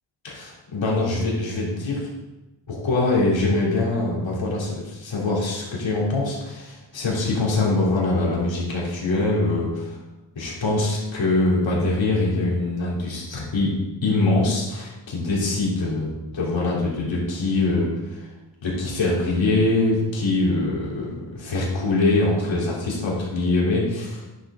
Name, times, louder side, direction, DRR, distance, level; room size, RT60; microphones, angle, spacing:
voice 1, 0.2-2.1 2.7-10.0 10.4-13.8 14.0-18.3 18.6-24.2, left 2 dB, 80° left, -4 dB, 3.5 m, -23 dB
10.5 x 7.9 x 3.9 m, 1.1 s
cardioid pair, 85°, 45 cm